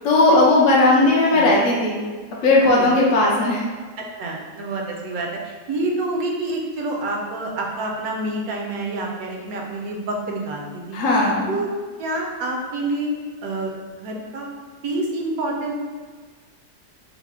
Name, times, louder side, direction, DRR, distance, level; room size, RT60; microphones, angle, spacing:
voice 1, 0.0-2.0 2.4-3.6 10.9-11.5, left 2 dB, 65° left, -4 dB, 0.8 m, -16 dB
voice 2, 0.9-1.5 2.6-2.9 4.0-11.7 12.0-13.7 14.0-14.5 14.8-15.7, right 2 dB, 70° right, 0 dB, 0.9 m, -28 dB
4.0 x 2.0 x 3.5 m, 1.5 s
omnidirectional pair, 1.9 m